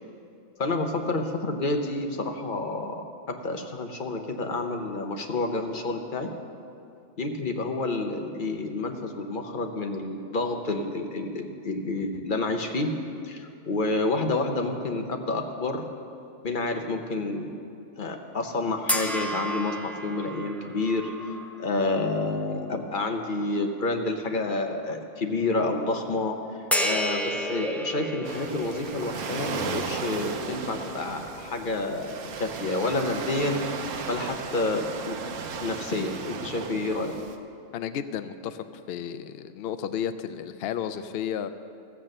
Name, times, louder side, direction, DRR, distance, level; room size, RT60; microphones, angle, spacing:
voice 1, 0.6-6.3 7.2-12.9 13.2-15.8 16.4-17.5 18.0-21.1 21.6-35.2 35.6-37.1, left 2 dB, 45° left, 4 dB, 1.0 m, -29 dB
sound 1, 18.9-22.4 22.9-23.1 26.7-33.1, equal, ahead, 0.3 m, -33 dB
Waves surf, 28.2-37.4, right 5 dB, 90° right, 1.2 m, -36 dB
voice 2, 37.7-41.5, left 9 dB, 65° left, 10 dB, 0.7 m, -33 dB
14.0 x 7.5 x 6.6 m, 2.5 s
omnidirectional pair, 1.3 m